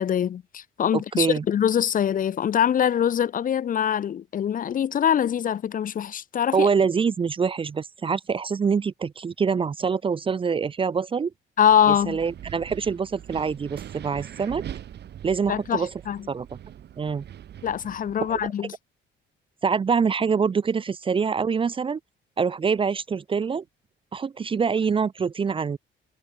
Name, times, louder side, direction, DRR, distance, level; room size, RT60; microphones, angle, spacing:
voice 1, 0.0-6.7 11.6-12.2 15.5-16.2 17.6-18.7, left 9 dB, 40° left, 1.0 m, -23 dB
voice 2, 0.9-1.4 6.5-11.3 11.9-14.6 15.2-15.9 16.3-16.6 17.0-17.3 18.2-18.5 19.6-22.0 22.4-23.6 24.1-25.8, right 6 dB, 25° right, 0.7 m, -25 dB
Wind, 11.6-18.5, right 10 dB, 55° right, 4.7 m, -42 dB
cardioid pair, 150°, 21 cm